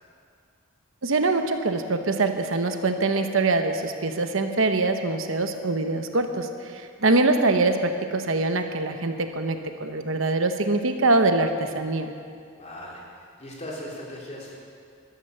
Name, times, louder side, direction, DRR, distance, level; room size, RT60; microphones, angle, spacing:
voice 1, 1.0-12.1, right 3 dB, 70° right, 7 dB, 1.0 m, -24 dB
voice 2, 12.5-14.6, left 1 dB, 35° left, -4 dB, 3.4 m, -39 dB
13.5 x 12.0 x 6.9 m, 2.3 s
head